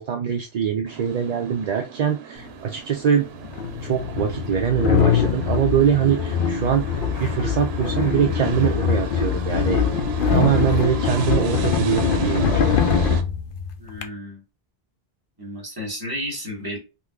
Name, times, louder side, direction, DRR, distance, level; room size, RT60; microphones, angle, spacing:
voice 1, 0.0-3.3 3.8-6.8 7.2-9.8 10.3-12.6, right 9 dB, 50° right, 4 dB, 0.5 m, -23 dB
sound 1, 0.8-13.2, right 7 dB, 90° right, 0.8 m, -38 dB
sound 2, 2.4-2.5 3.4-14.1, left 6 dB, 65° left, 0.7 m, -23 dB
sound 3, 6.8-8.1 8.5-9.4 9.7-12.7, left 1 dB, 35° left, 1.3 m, -44 dB
voice 2, 13.8-14.4 15.4-16.8, equal, 20° right, -1 dB, 1.4 m, -32 dB
3.7 x 3.0 x 2.3 m, 0.29 s
omnidirectional pair, 1.0 m